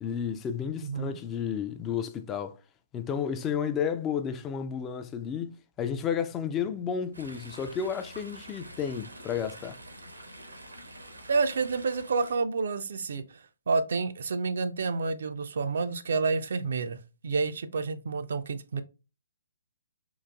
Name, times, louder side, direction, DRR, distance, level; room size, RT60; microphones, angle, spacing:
voice 1, 0.0-2.6 2.9-9.8, left 7 dB, 20° left, 0.3 m, -32 dB
voice 2, 0.8-1.2 11.3-18.8, right 4 dB, 60° right, 0.4 m, -29 dB
Chatter / Stream, 7.1-12.4, right 1 dB, 85° right, 0.7 m, -47 dB
3.9 x 2.5 x 2.2 m
figure-of-eight pair, 130°, 0 cm